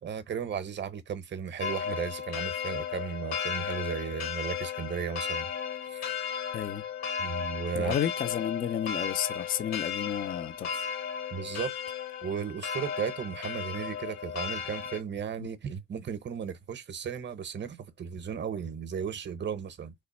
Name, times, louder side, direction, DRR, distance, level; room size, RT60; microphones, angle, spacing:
voice 1, 0.0-5.5 5.9-6.0 7.2-7.9 11.3-11.7 12.2-19.9, right 7 dB, 35° right, 0.7 m, -35 dB
sound 1, 1.6-15.0, left 8 dB, 50° left, 0.8 m, -35 dB
voice 2, 7.7-10.9, left 9 dB, 30° left, 0.4 m, -32 dB
3.3 x 2.0 x 4.0 m
supercardioid pair, 90°, 34 cm